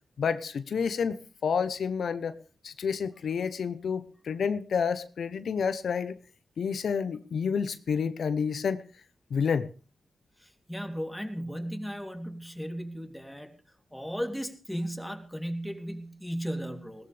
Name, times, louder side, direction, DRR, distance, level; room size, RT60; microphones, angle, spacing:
voice 1, 0.2-2.4 2.6-6.2 6.6-8.8 9.3-9.7, left 6 dB, 75° left, 12 dB, 0.9 m, -29 dB
voice 2, 10.4-13.6 13.9-17.1, equal, 5° left, 4 dB, 3.1 m, -36 dB
20.0 x 17.5 x 3.4 m, 0.36 s
cardioid pair, 80°, 0 cm